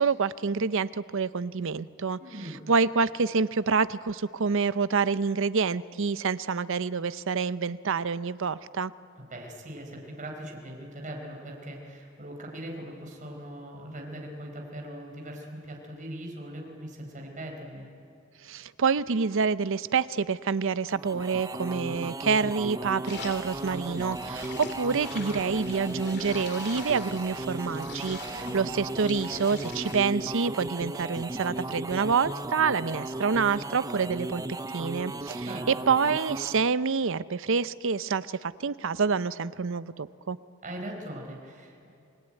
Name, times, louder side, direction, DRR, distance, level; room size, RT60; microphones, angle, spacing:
voice 1, 0.0-2.2 2.7-8.9 18.4-34.4 34.7-40.4, right 5 dB, 65° right, 15 dB, 0.7 m, -27 dB
voice 2, 2.2-2.6 9.2-17.9 28.3-28.7 35.4-35.7 40.6-41.9, right 1 dB, 40° right, 0 dB, 4.9 m, -40 dB
sound 1, 20.9-36.7, right 2 dB, 15° right, 0.7 m, -36 dB
sound 2, 23.1-30.0, left 4 dB, 55° left, 2.6 m, -43 dB
29.5 x 21.0 x 9.1 m, 2.6 s
head